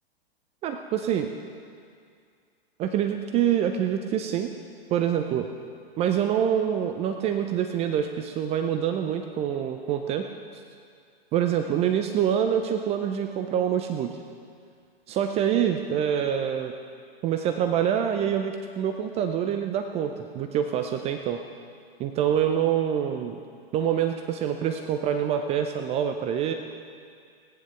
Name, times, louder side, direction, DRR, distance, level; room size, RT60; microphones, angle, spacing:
voice 1, 0.6-1.3 2.8-4.5 4.9-5.5 6.0-10.2 11.3-14.2 15.1-16.7 17.2-21.4 22.0-23.4 23.7-26.5, right 9 dB, 20° right, 6 dB, 0.6 m, -26 dB
17.5 x 9.9 x 5.7 m, 2.2 s
figure-of-eight pair, 110°, 31 cm